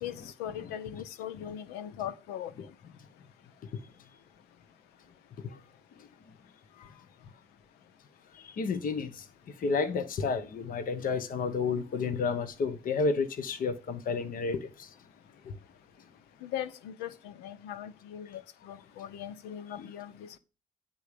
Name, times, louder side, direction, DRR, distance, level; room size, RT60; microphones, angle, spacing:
voice 1, 0.0-2.7 16.4-20.4, left 10 dB, 75° left, 0.5 m, -40 dB
voice 2, 8.3-9.3 9.6-14.9 15.4-15.5 19.8-19.9, left 4 dB, 55° left, 1.0 m, -31 dB
9.4 x 3.8 x 6.7 m
hypercardioid pair, 50°, 17 cm